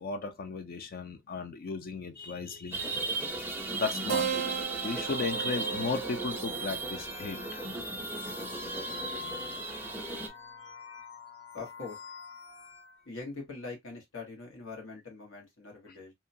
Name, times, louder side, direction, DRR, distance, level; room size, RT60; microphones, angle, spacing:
voice 1, 0.0-4.3 4.8-7.6, left 4 dB, 50° left, 0.4 m, -36 dB
sound 1, 2.7-10.3, right 3 dB, 10° right, 0.5 m, -36 dB
Keyboard (musical), 4.1-9.1, right 8 dB, 85° right, 0.4 m, -38 dB
sound 2, 5.1-13.0, left 5 dB, 65° left, 1.4 m, -46 dB
voice 2, 11.5-12.0 13.0-16.1, left 3 dB, 85° left, 1.3 m, -42 dB
2.8 x 2.2 x 2.6 m
head